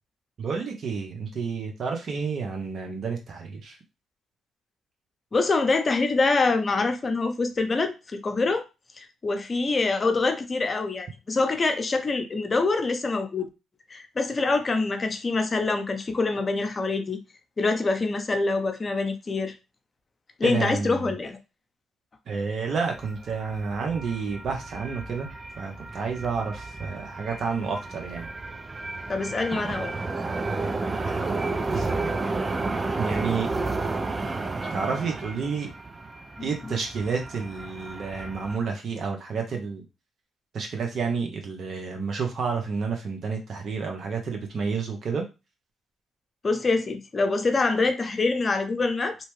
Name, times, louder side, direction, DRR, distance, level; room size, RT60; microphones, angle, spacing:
voice 1, 0.4-3.8 20.4-21.1 22.3-25.3 25.6-28.3 31.0-32.2 33.0-33.5 34.7-35.7 36.4-39.8 40.5-45.2, right 5 dB, 60° right, 0.8 m, -30 dB
voice 2, 5.3-8.7 9.0-13.5 13.9-17.2 17.6-19.5 20.4-21.4 29.1-29.9 36.4-36.7 46.4-49.2, left 3 dB, 40° left, 0.6 m, -25 dB
sound 1, 22.7-38.6, right 3 dB, 30° right, 0.4 m, -32 dB
2.8 x 2.2 x 3.1 m
supercardioid pair, 60°, 0 cm